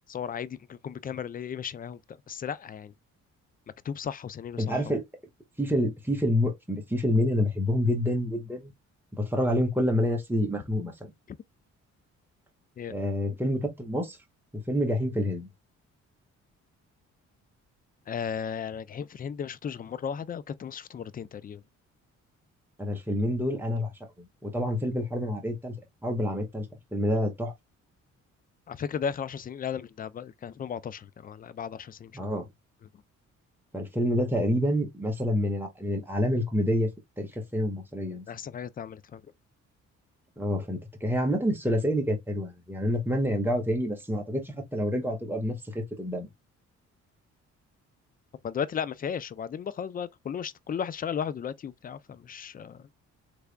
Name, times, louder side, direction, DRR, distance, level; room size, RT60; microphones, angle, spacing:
voice 1, 0.1-2.9 3.8-4.9 12.8-12.9 18.1-21.6 28.7-32.3 38.3-39.2 48.4-52.9, left 7 dB, 30° left, 0.4 m, -35 dB
voice 2, 4.6-5.0 5.6-8.7 9.1-11.1 12.9-14.2 14.5-15.5 22.8-23.9 24.2-25.7 26.0-26.7 26.9-27.5 32.1-32.5 33.7-36.9 37.2-38.2 40.4-46.3, equal, 5° right, 1.5 m, -28 dB
3.4 x 3.3 x 2.2 m
cardioid pair, 90°, 30 cm